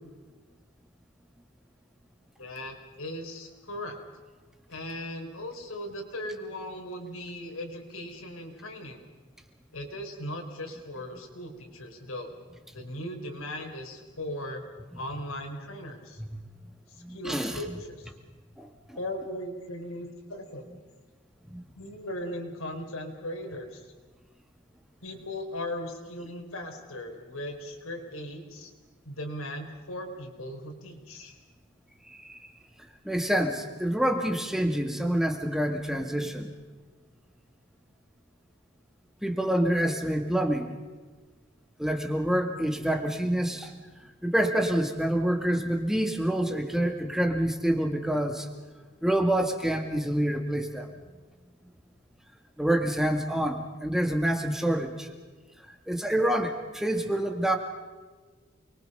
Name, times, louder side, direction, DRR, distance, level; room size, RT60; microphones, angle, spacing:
voice 1, 2.4-4.0 4.7-9.0 9.7-12.3 12.7-14.6 15.0-16.2 16.9-18.1 18.9-20.9 21.7-23.9 25.0-28.7 29.0-31.4, left 1 dB, 80° left, 3 dB, 4.6 m, -38 dB
voice 2, 17.0-17.6 18.6-19.0 21.5-21.6 32.1-32.4 33.1-36.5 39.2-40.8 41.8-43.8 44.2-48.5 49.0-50.9 52.6-55.1 55.9-57.6, right 1 dB, ahead, 4 dB, 1.9 m, -27 dB
28.5 x 23.0 x 5.6 m, 1.4 s
head